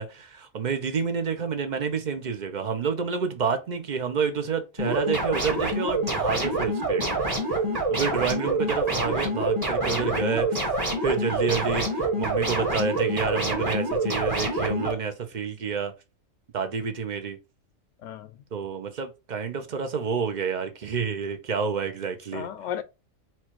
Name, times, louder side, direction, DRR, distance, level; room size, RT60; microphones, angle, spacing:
voice 1, 0.0-7.2 7.9-10.6 11.0-15.9 16.5-17.4 18.5-22.5, right 5 dB, 45° right, 0.6 m, -29 dB
sound 1, 4.8-14.9, right 2 dB, 15° right, 1.4 m, -26 dB
voice 2, 9.8-10.2 18.0-18.4 22.3-22.8, left 9 dB, 70° left, 0.9 m, -36 dB
4.4 x 2.3 x 4.5 m
omnidirectional pair, 1.4 m